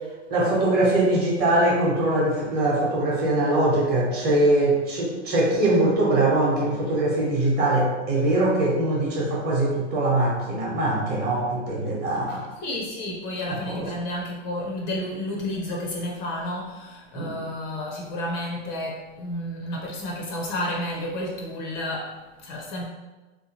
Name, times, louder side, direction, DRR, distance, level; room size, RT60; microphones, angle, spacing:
voice 1, 0.3-12.4 13.7-13.9 17.1-17.4, right 1 dB, 25° right, -4 dB, 0.9 m, -22 dB
voice 2, 12.3-22.9, left 1 dB, 35° left, -1 dB, 0.5 m, -31 dB
3.3 x 2.7 x 2.9 m, 1.2 s
hypercardioid pair, 135°, 38 cm